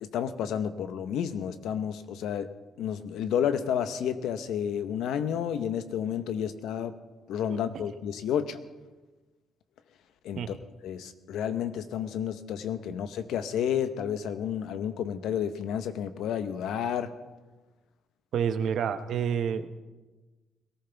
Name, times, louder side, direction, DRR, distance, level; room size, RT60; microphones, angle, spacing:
voice 1, 0.0-2.5 2.8-7.0 7.3-8.6 10.2-10.6 10.8-17.1, left 9 dB, 85° left, 10 dB, 1.0 m, -31 dB
voice 2, 18.3-19.7, right 8 dB, 70° right, 9 dB, 0.9 m, -29 dB
22.0 x 14.5 x 3.5 m, 1.2 s
cardioid pair, 90°, 0 cm